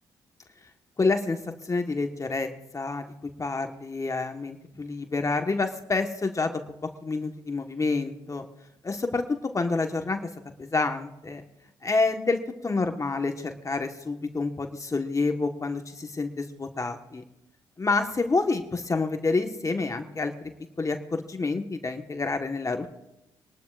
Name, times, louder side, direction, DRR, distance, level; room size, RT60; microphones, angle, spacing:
voice 1, 1.0-1.4 1.6-3.1 3.4-6.6 7.0-8.4 8.8-9.2 9.5-10.2 10.6-11.4 11.8-17.2 17.8-20.5 20.8-22.9, left 3 dB, 30° left, 5 dB, 1.4 m, -28 dB
25.0 x 12.0 x 2.5 m, 0.90 s
supercardioid pair, 60°, 10 cm